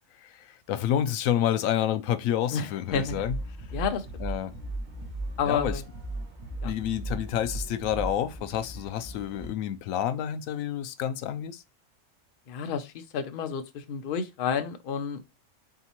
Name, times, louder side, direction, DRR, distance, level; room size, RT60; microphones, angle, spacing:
voice 1, 0.2-3.4 4.2-4.5 5.4-5.8 6.6-11.6, left 10 dB, 90° left, 1.0 m, -29 dB
voice 2, 2.5-3.2 3.7-4.1 5.4-5.8 6.6-6.7 12.5-15.4, left 6 dB, 55° left, 0.7 m, -30 dB
sound 1, 2.9-9.5, right 2 dB, 35° right, 1.2 m, -37 dB
4.0 x 3.6 x 2.9 m
omnidirectional pair, 1.4 m